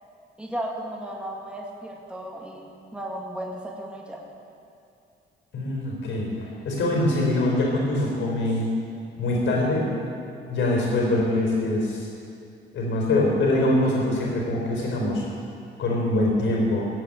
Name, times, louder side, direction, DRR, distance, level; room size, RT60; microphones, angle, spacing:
voice 1, 0.4-4.2, right 1 dB, 5° right, -1 dB, 2.1 m, -35 dB
voice 2, 5.5-8.7 9.2-9.9 10.5-12.1 12.7-15.2 15.8-16.9, left 1 dB, 70° left, -1 dB, 4.4 m, -23 dB
15.0 x 7.7 x 8.7 m, 2.5 s
cardioid pair, 90°, 20 cm